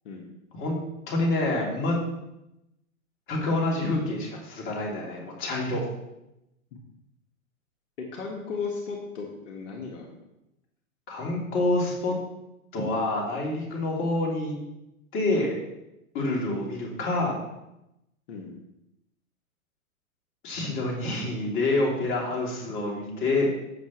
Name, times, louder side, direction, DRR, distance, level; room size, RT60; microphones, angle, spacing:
voice 1, 1.1-2.0 3.3-5.8 11.1-12.2 12.7-14.6 15.1-15.5 16.1-17.4 20.4-23.5, left 2 dB, 30° left, -2 dB, 3.0 m, -27 dB
voice 2, 8.0-10.1 16.4-16.6 18.3-18.6, left 5 dB, 60° left, 0 dB, 1.8 m, -36 dB
15.0 x 6.1 x 3.1 m, 0.88 s
hypercardioid pair, 125°, 42 cm